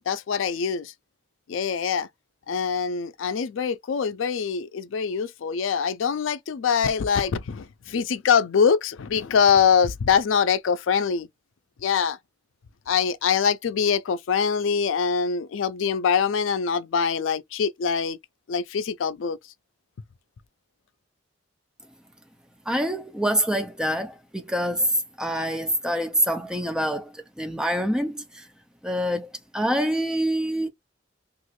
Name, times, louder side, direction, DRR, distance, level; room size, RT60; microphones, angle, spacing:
voice 1, 0.1-0.9 1.5-2.1 2.5-11.3 11.8-12.2 12.9-18.2 18.5-19.4, left 6 dB, 90° left, 0.4 m, -23 dB
voice 2, 22.7-28.5 28.8-30.7, equal, 5° right, 0.4 m, -26 dB
3.0 x 2.4 x 3.0 m
head